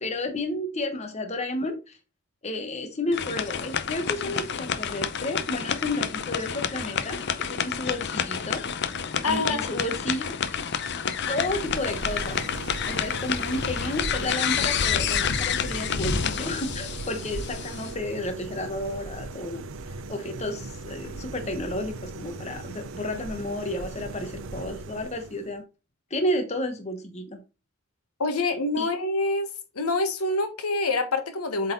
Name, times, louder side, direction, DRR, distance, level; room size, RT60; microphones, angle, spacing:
voice 1, 0.0-2.0 2.4-8.6 9.2-10.4 11.3-12.4 12.8-25.6 26.1-27.4 28.8-28.9, left 1 dB, 30° left, 1.0 m, -32 dB
sound 1, 3.1-17.9, left 7 dB, 50° left, 0.6 m, -29 dB
voice 2, 9.2-9.7 28.2-29.5 29.7-31.7, left 2 dB, 85° left, 1.4 m, -26 dB
sound 2, 10.9-25.6, right 3 dB, 60° right, 0.6 m, -38 dB
7.8 x 4.0 x 3.9 m
head